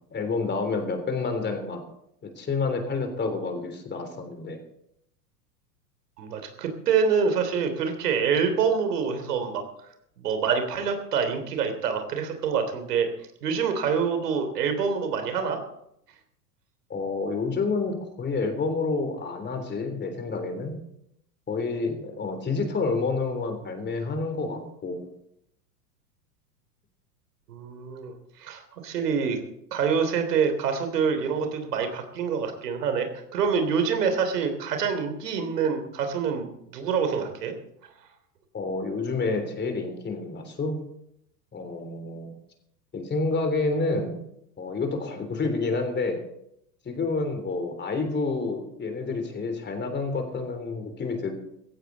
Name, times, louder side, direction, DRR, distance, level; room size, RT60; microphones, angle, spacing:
voice 1, 0.0-1.8 2.2-4.6 16.9-20.8 21.5-25.1 38.5-40.8 41.5-42.3 42.9-44.2 44.6-46.2 46.9-51.3, left 3 dB, 20° left, 6 dB, 3.5 m, -29 dB
voice 2, 6.2-9.6 10.2-13.1 13.4-15.6 27.5-28.1 28.4-29.4 29.7-36.5 36.7-37.5, right 6 dB, 70° right, 7 dB, 3.3 m, -26 dB
16.5 x 15.5 x 4.1 m, 0.76 s
hypercardioid pair, 95°, 48 cm